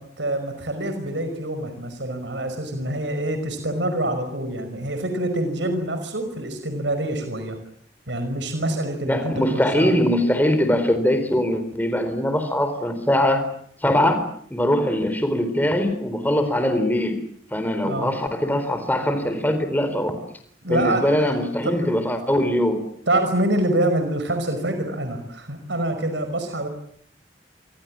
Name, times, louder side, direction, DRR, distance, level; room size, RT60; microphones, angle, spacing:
voice 1, 0.0-7.6 8.1-9.9 17.8-18.2 20.6-21.9 23.1-26.7, right 1 dB, 85° right, 7 dB, 5.4 m, -26 dB
voice 2, 9.1-13.5 13.8-17.2 17.5-20.2 20.7-22.8, left 1 dB, 10° left, 9 dB, 4.0 m, -22 dB
28.0 x 25.0 x 7.5 m, 0.62 s
head